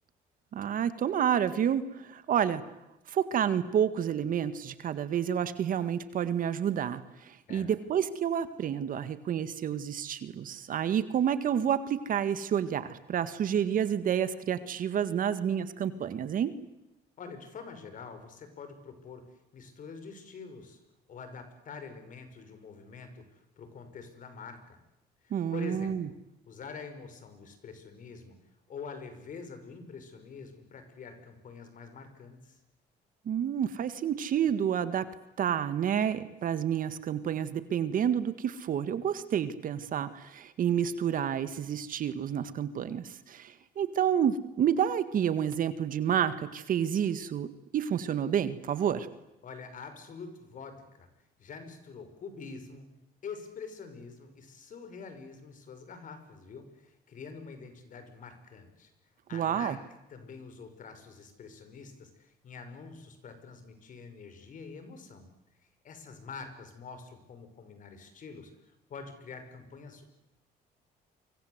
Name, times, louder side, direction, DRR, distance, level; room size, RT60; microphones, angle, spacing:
voice 1, 0.5-2.6 3.1-16.5 25.3-26.1 33.3-35.1 35.4-49.1 59.3-59.8, right 9 dB, 55° right, 12 dB, 1.9 m, -29 dB
voice 2, 17.2-19.2 19.5-20.8 21.1-24.8 25.2-26.1 26.5-28.4 28.7-32.6 49.4-51.1 51.4-52.9 53.2-58.9 59.3-59.8 60.1-65.3 65.8-68.5 68.9-70.2, left 5 dB, 50° left, 9 dB, 5.9 m, -46 dB
29.0 x 25.0 x 8.2 m, 0.89 s
cardioid pair, 110°, 17 cm